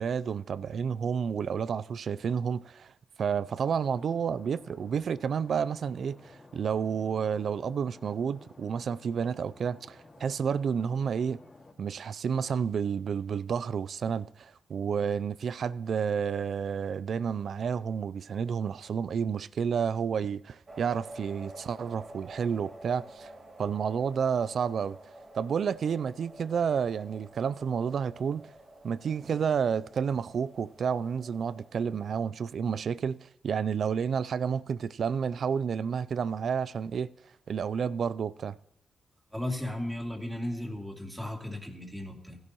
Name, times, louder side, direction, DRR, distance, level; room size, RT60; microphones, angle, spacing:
voice 1, 0.0-2.9 3.2-6.2 6.5-11.4 11.8-23.3 23.6-25.0 25.3-28.5 28.8-37.1 37.5-38.6, right 7 dB, 70° right, 0.3 m, -30 dB
Stream, 3.4-11.7, left 2 dB, 30° left, 3.2 m, -54 dB
sound 1, 20.7-32.2, right 1 dB, 40° right, 1.8 m, -50 dB
voice 2, 39.3-42.4, left 1 dB, 10° right, 2.4 m, -35 dB
16.0 x 11.0 x 2.9 m
cardioid pair, 60°, 0 cm